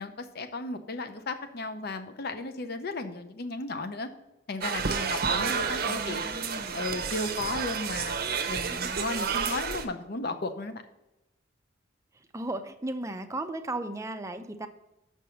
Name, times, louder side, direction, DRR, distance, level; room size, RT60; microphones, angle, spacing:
voice 1, 0.0-4.1 4.5-8.1 8.5-10.8, left 3 dB, 55° left, 9 dB, 0.7 m, -35 dB
sound 1, 4.6-9.9, right 6 dB, 50° right, 0.7 m, -30 dB
voice 2, 5.8-6.8 12.3-14.7, right 2 dB, 15° right, 7 dB, 0.5 m, -36 dB
6.8 x 5.5 x 6.2 m, 0.95 s
head